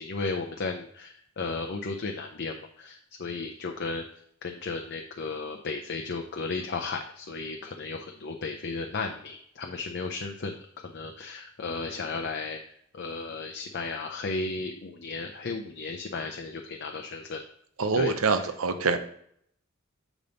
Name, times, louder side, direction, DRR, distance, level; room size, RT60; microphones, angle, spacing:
voice 1, 0.0-4.0 4.4-10.5 10.8-12.6 12.9-17.4 17.9-18.5, left 3 dB, 55° left, 3 dB, 0.6 m, -34 dB
voice 2, 17.8-19.0, right 4 dB, 85° right, 9 dB, 0.8 m, -25 dB
7.2 x 5.2 x 4.0 m, 0.67 s
head